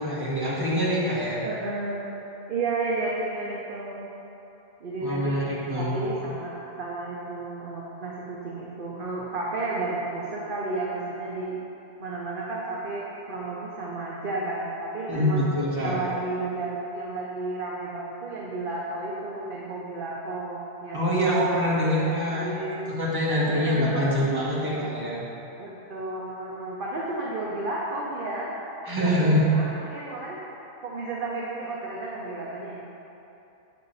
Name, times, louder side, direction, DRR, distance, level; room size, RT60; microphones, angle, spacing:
voice 1, 0.0-1.5 5.0-6.1 15.1-16.0 20.9-22.5 22.9-25.2 28.9-29.4, equal, 15° right, -8 dB, 1.5 m, -25 dB
voice 2, 1.4-2.1 2.5-4.1 4.8-11.6 12.0-15.5 15.8-21.6 22.1-23.0 23.5-24.2 24.5-24.9 25.6-28.5 29.0-30.4 30.8-32.8, right 2 dB, 45° right, -5 dB, 0.9 m, -32 dB
8.1 x 5.7 x 4.0 m, 3.0 s
omnidirectional pair, 1.4 m